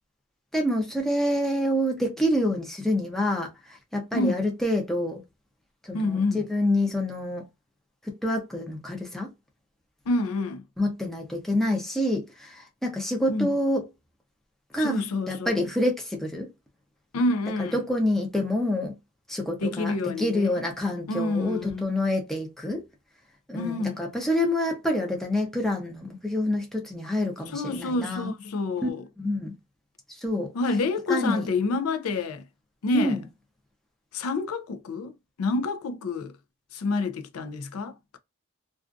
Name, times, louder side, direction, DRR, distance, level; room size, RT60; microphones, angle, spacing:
voice 1, 0.5-5.2 5.8-7.5 8.0-9.3 10.8-13.9 14.7-15.0 15.3-16.5 17.6-19.0 19.3-22.9 23.5-28.3 28.8-28.9 29.2-29.5 30.1-30.5 31.1-31.5 32.9-33.2, left 1 dB, ahead, 0.6 m, -27 dB
voice 2, 5.9-6.4 10.1-10.6 13.3-13.5 14.8-15.6 17.1-17.8 19.6-20.6 21.1-21.9 23.5-24.0 27.5-29.0 30.5-32.4 32.8-33.2 34.1-35.1 35.4-36.3 36.7-38.2, left 2 dB, 80° left, 0.4 m, -28 dB
2.4 x 2.4 x 2.4 m
head